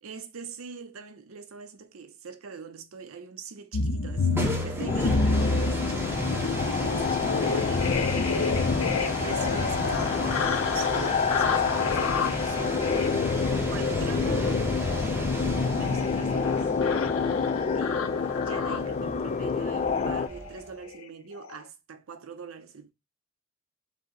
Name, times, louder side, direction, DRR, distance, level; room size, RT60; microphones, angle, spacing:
voice 1, 0.0-13.1 13.7-14.7 15.4-16.7 17.7-22.9, right 5 dB, 80° right, 0.6 m, -43 dB
sound 1, 3.7-19.1 19.8-20.1 20.4-20.6 20.9-21.1 21.3-21.6, left 4 dB, 85° left, 0.6 m, -31 dB
sound 2, 4.1-20.8, right 1 dB, 10° right, 0.7 m, -36 dB
sound 3, 4.9-20.3, left 5 dB, 35° left, 0.3 m, -27 dB
5.3 x 2.1 x 3.6 m
head